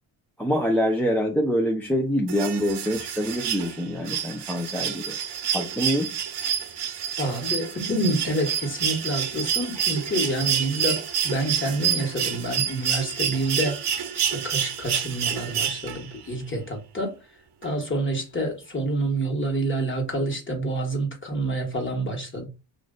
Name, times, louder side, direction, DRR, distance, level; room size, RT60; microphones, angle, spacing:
voice 1, 0.4-5.1 5.5-6.1, equal, 5° left, 0.4 m, -25 dB
sound 1, 2.3-16.2 17.6-17.7, right 8 dB, 60° right, 0.7 m, -28 dB
voice 2, 7.2-13.8 14.1-17.2 17.6-22.5, right 1 dB, 25° left, 1.3 m, -28 dB
3.1 x 2.5 x 3.8 m
cardioid pair, 105°, 45 cm